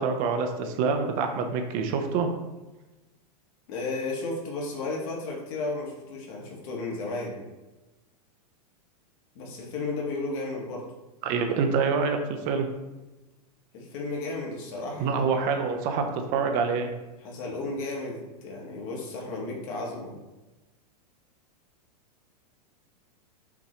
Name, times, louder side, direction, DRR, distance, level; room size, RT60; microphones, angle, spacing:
voice 1, 0.0-2.3 11.2-12.2 12.4-12.7 15.0-16.9, right 5 dB, 45° right, 5 dB, 0.6 m, -26 dB
voice 2, 3.7-7.4 9.3-10.8 13.7-15.2 17.2-20.1, left 3 dB, 55° left, -2 dB, 1.5 m, -33 dB
5.8 x 3.0 x 2.9 m, 1.1 s
hypercardioid pair, 120°, 21 cm